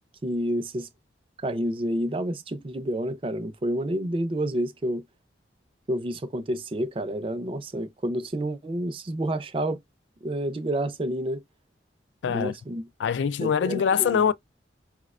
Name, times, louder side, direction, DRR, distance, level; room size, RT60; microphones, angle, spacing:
voice 1, 0.2-0.9 1.4-5.0 5.9-9.8 10.2-11.4 12.3-12.9 13.4-14.3, right 1 dB, 30° right, 0.4 m, -29 dB
voice 2, 12.2-12.5 13.0-14.3, left 7 dB, 80° left, 0.3 m, -23 dB
4.8 x 2.1 x 2.3 m
head